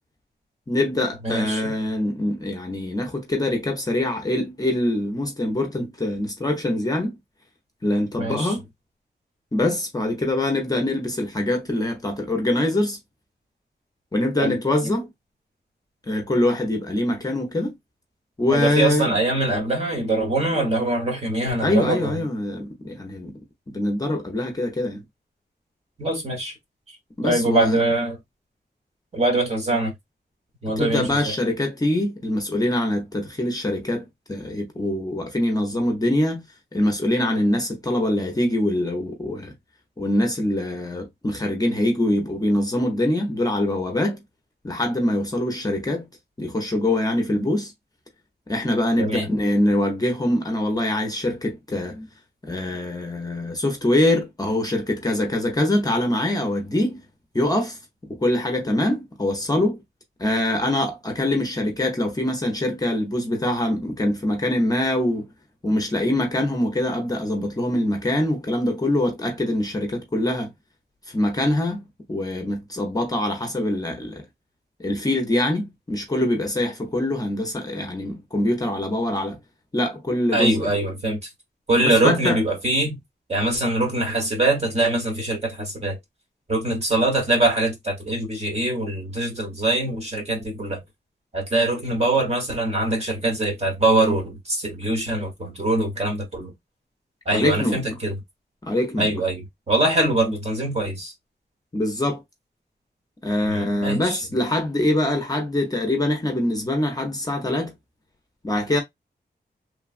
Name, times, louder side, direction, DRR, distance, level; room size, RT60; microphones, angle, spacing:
voice 1, 0.7-7.2 7.8-8.6 9.5-13.0 14.1-15.1 16.1-17.7 18.4-19.1 21.6-23.3 23.7-25.0 27.2-27.8 30.8-36.4 36.7-39.5 40.0-44.2 44.6-46.0 46.4-47.7 48.5-52.1 52.4-57.0 57.3-57.8 58.1-59.8 60.2-65.3 65.6-70.5 71.1-74.2 74.8-79.4 79.7-80.6 81.8-82.4 97.3-97.8 98.6-99.1 101.7-102.2 103.2-107.7 108.4-108.8, left 1 dB, 20° left, 0.6 m, -24 dB
voice 2, 1.2-1.7 8.2-8.5 14.4-14.6 14.8-14.9 18.5-22.2 26.0-26.5 26.9-27.0 27.2-28.2 29.1-29.9 30.6-31.3 49.0-49.3 80.3-81.3 81.7-83.0 83.3-86.0 86.5-90.8 91.3-96.5 97.2-98.1 99.0-101.1 103.4-104.2, right 2 dB, 35° right, 1.2 m, -23 dB
3.1 x 2.2 x 2.4 m
wide cardioid pair, 150°, 18 cm